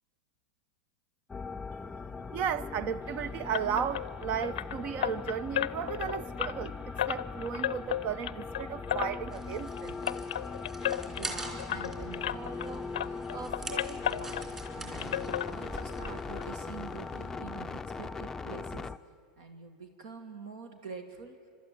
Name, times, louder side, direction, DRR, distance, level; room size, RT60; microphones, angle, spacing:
sound 1, 1.3-19.0, left 4 dB, 15° left, 0.5 m, -40 dB
voice 1, 2.3-6.8 7.1-9.9, right 8 dB, 45° right, 0.7 m, -34 dB
sound 2, 3.5-12.7 12.9-14.7 15.0-16.1 16.4-16.5 16.9-17.0 17.4-17.5, left 11 dB, 80° left, 0.5 m, -35 dB
sound 3, 9.3-17.3, right 2 dB, 15° right, 3.6 m, -45 dB
voice 2, 11.1-18.9 19.4-21.3, right 4 dB, 70° right, 2.0 m, -45 dB
26.5 x 12.5 x 9.7 m
hypercardioid pair, 105°, 3 cm